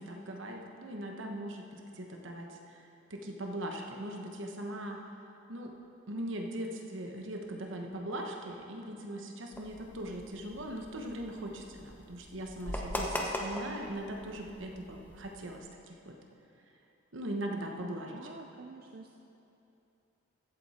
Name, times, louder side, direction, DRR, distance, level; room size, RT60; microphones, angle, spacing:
voice 1, 0.0-2.8 3.1-5.0 5.5-5.7 6.1-16.2 17.1-18.3, right 1 dB, 65° right, 2 dB, 1.2 m, -40 dB
sound 1, 9.5-15.6, equal, 10° left, 0.8 m, -41 dB
voice 2, 18.1-19.1, right 3 dB, 45° right, 3 dB, 0.5 m, -48 dB
15.0 x 8.0 x 4.3 m, 2.9 s
head